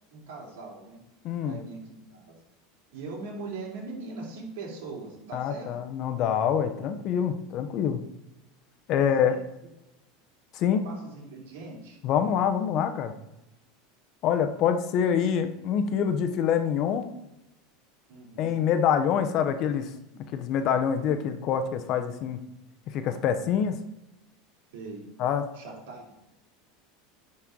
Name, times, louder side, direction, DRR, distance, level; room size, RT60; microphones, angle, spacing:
voice 1, 0.1-1.0 1.4-2.3 2.9-5.7 8.9-9.4 10.6-12.0 18.1-18.6 24.7-25.0 25.5-26.1, right 3 dB, 85° right, -3 dB, 2.8 m, -41 dB
voice 2, 1.2-1.6 5.3-8.0 8.9-9.3 10.5-10.8 12.0-13.1 14.2-17.1 18.4-19.9 20.3-22.4 22.9-23.8 25.2-25.5, left 8 dB, 45° left, 8 dB, 0.8 m, -25 dB
10.5 x 4.4 x 3.8 m, 0.92 s
supercardioid pair, 140°, 0 cm